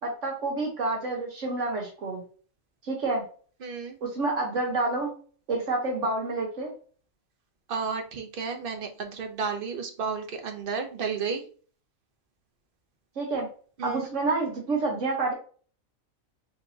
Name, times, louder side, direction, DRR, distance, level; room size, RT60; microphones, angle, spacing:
voice 1, 0.0-2.2 2.8-3.3 4.0-5.1 5.5-6.7 13.2-13.5 13.8-15.3, right 3 dB, 65° right, 0 dB, 1.4 m, -28 dB
voice 2, 3.6-4.0 7.7-11.4 13.8-14.1, right 5 dB, 50° right, 5 dB, 0.9 m, -32 dB
4.6 x 4.0 x 2.7 m, 0.41 s
omnidirectional pair, 1.4 m